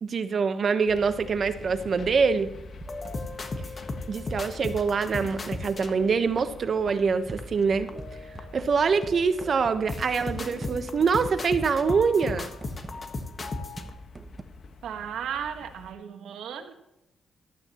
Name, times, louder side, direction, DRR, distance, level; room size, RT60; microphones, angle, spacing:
voice 1, 0.0-2.5 4.1-7.9 8.5-12.5, right 5 dB, 55° right, 10 dB, 1.1 m, -25 dB
sound 1, 0.9-15.9, left 3 dB, 60° left, 1.4 m, -47 dB
sound 2, 2.5-4.8 5.3-5.9 7.3-14.4, right 2 dB, 25° right, 1.0 m, -44 dB
sound 3, 2.9-6.9 7.4-7.5 7.9-8.6 8.9-13.9, left 3 dB, 40° left, 1.6 m, -37 dB
voice 2, 14.8-16.7, right 8 dB, 80° right, 5 dB, 1.5 m, -35 dB
15.0 x 12.5 x 3.1 m, 0.89 s
cardioid pair, 80°, 0 cm